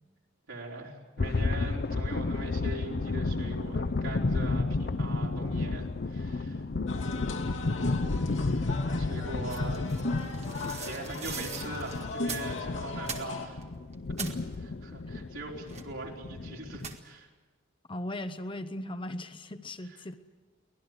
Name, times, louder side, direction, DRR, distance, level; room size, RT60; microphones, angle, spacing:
voice 1, 0.5-6.6 8.2-9.9 10.8-13.6 14.8-17.3 19.8-20.0, right 2 dB, 80° right, -2 dB, 4.4 m, -41 dB
sound 1, 1.2-17.0, left 3 dB, 55° left, 0.6 m, -32 dB
sound 2, 6.9-13.5, left 3 dB, 75° left, 2.7 m, -37 dB
voice 2, 7.2-7.5 14.2-14.3 17.9-20.2, left 1 dB, 25° left, 9 dB, 0.9 m, -38 dB
sound 3, 9.5-12.6 13.0-13.6 13.9-14.4 15.7-16.1 16.8-17.2, right 6 dB, 35° right, 1.9 m, -41 dB
24.0 x 19.0 x 8.1 m, 1.3 s
head